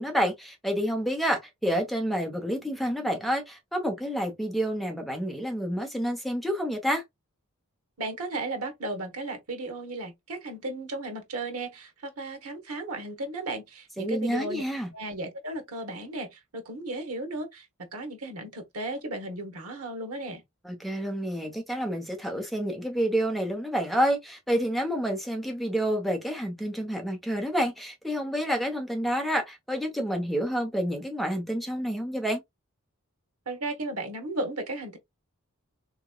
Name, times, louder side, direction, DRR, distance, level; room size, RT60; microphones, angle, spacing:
voice 1, 0.0-7.0 14.0-14.9 20.6-32.4, equal, ahead, 0.8 m, -29 dB
voice 2, 8.0-14.6 14.9-17.7 17.9-20.4 33.5-35.0, right 2 dB, 85° right, 1.0 m, -35 dB
3.6 x 3.0 x 2.3 m
head